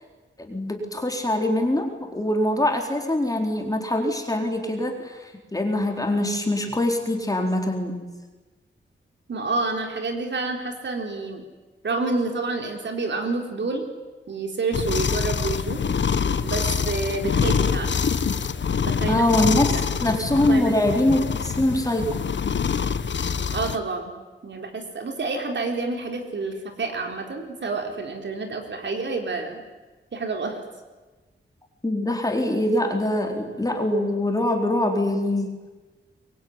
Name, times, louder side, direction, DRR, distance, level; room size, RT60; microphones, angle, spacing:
voice 1, 0.4-8.0 19.1-19.7 20.0-22.1 31.8-35.6, left 1 dB, 15° left, 2 dB, 4.1 m, -23 dB
voice 2, 9.3-11.4 11.8-13.8 14.3-15.8 16.4-18.0 18.8-19.2 20.0-20.1 20.5-20.8 23.5-24.1 24.4-29.6 30.1-30.6, right 3 dB, 60° right, 3 dB, 4.1 m, -28 dB
sound 1, 14.7-23.8, left 6 dB, 60° left, 1.2 m, -25 dB
24.5 x 23.0 x 9.7 m, 1.2 s
wide cardioid pair, 130°, 21 cm